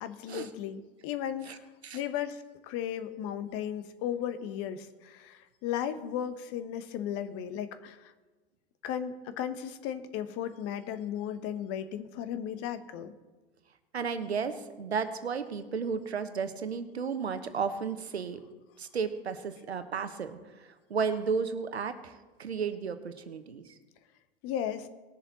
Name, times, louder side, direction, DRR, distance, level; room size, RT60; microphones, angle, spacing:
voice 1, 0.0-1.7 1.9-8.1 8.8-13.1 24.4-24.9, left 9 dB, 45° left, 11 dB, 1.2 m, -35 dB
voice 2, 13.9-18.4 18.8-23.7, right 5 dB, 85° right, 10 dB, 1.1 m, -33 dB
19.5 x 7.1 x 4.1 m, 1.2 s
figure-of-eight pair, 85°, 31 cm